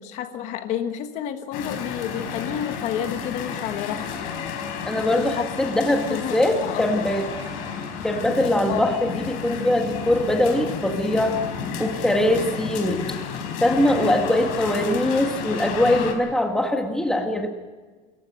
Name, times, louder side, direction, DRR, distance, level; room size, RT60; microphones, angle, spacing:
voice 1, 0.0-4.3 5.0-5.5 6.1-6.3 6.6-6.8 8.7-9.0, left 10 dB, 50° left, 8 dB, 1.4 m, -30 dB
sound 1, 1.5-16.1, left 6 dB, 70° left, 4.2 m, -32 dB
voice 2, 4.9-7.2 8.0-11.4 11.8-13.2 13.6-17.5, left 1 dB, 5° left, 3 dB, 1.9 m, -22 dB
28.0 x 15.0 x 6.5 m, 1.4 s
cardioid pair, 180°, 15 cm